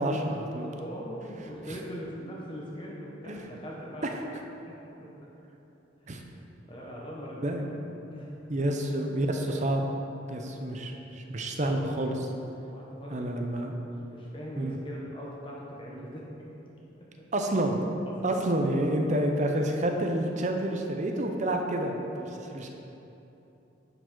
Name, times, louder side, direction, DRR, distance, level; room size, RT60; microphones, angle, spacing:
voice 1, 0.0-0.7 3.3-3.5 6.1-6.2 7.4-7.7 8.5-9.8 10.3-12.3 13.1-13.8 14.6-14.8 17.3-17.8 18.2-22.7, right 1 dB, 40° right, 3 dB, 0.6 m, -29 dB
voice 2, 0.6-4.2 4.7-4.8 5.0-5.1 6.1-6.2 6.7-7.6 8.0-8.7 10.3-10.6 12.7-13.3 14.1-16.3 17.0-17.3 18.1-18.3 22.4-22.7, equal, 25° left, -4 dB, 1.0 m, -41 dB
10.5 x 5.0 x 3.9 m, 3.0 s
head